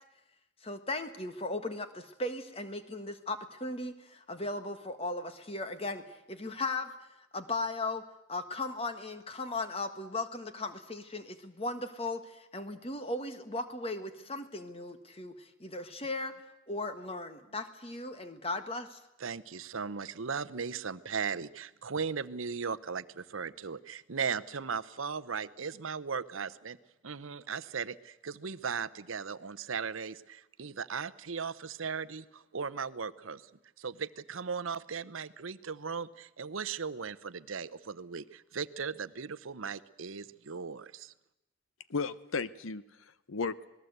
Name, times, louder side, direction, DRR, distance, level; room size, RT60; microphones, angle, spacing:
voice 1, 0.6-6.9 7.3-16.3 16.7-19.0, left 2 dB, 30° left, 9 dB, 1.6 m, -37 dB
voice 2, 19.2-26.8 27.0-33.4 33.8-41.1, right 6 dB, 80° right, 16 dB, 0.8 m, -37 dB
voice 3, 41.9-43.7, left 4 dB, 80° left, 15 dB, 0.9 m, -35 dB
27.0 x 19.5 x 8.0 m, 0.93 s
head